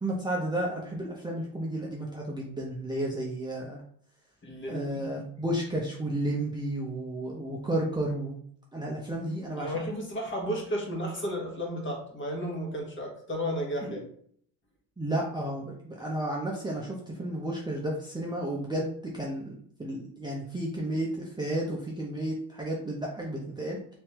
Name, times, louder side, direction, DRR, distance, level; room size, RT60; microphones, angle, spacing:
voice 1, 0.0-3.8 4.7-8.4 8.7-9.7 13.8-14.0 15.0-23.8, right 1 dB, 10° right, -3 dB, 0.7 m, -32 dB
voice 2, 4.4-5.0 9.6-14.0, equal, 25° left, 0 dB, 1.3 m, -33 dB
3.5 x 3.0 x 3.0 m, 0.63 s
supercardioid pair, 80°, 44 cm